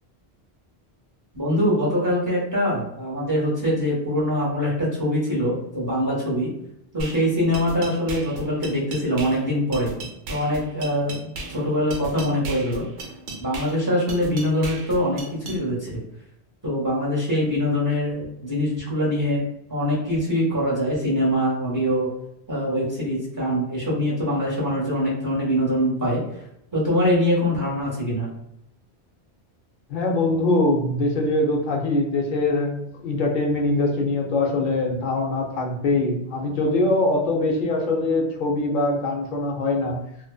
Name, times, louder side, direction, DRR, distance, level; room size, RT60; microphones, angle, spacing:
voice 1, 1.3-6.5 6.9-9.9 10.3-12.9 13.4-15.2 15.5-16.0 16.6-22.1 22.5-26.2 26.7-28.3, equal, 20° right, -6 dB, 0.7 m, -23 dB
sound 1, 7.0-15.6, right 3 dB, 90° right, 0.9 m, -36 dB
voice 2, 29.9-40.0, left 2 dB, 60° left, 0 dB, 0.6 m, -23 dB
2.6 x 2.1 x 2.3 m, 0.79 s
omnidirectional pair, 1.1 m